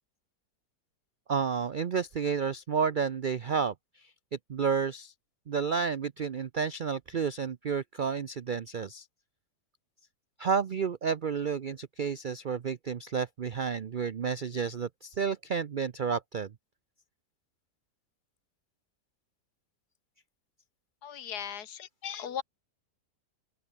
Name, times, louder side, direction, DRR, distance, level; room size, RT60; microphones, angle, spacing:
voice 1, 1.3-5.1 5.5-9.1 10.4-16.5, right 6 dB, 80° right, 0.4 m, -31 dB
voice 2, 21.0-22.4, left 8 dB, 75° left, 2.1 m, -38 dB
open air
omnidirectional pair, 1.7 m